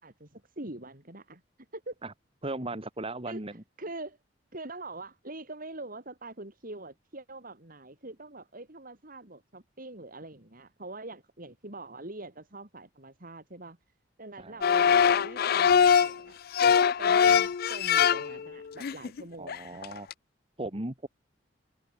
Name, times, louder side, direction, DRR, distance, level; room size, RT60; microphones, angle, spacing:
voice 1, 0.0-1.4 1.7-1.9 3.3-3.4 3.8-4.2 4.5-13.8 14.2-19.8, right 2 dB, 50° right, 4.2 m, -44 dB
voice 2, 2.4-3.5 14.4-14.6 19.4-20.1 20.6-21.1, right 2 dB, 30° right, 2.1 m, -36 dB
sound 1, 14.6-16.1 16.5-18.5 18.8-19.2 19.5-19.6 19.8-20.1, left 7 dB, 55° left, 0.4 m, -22 dB
head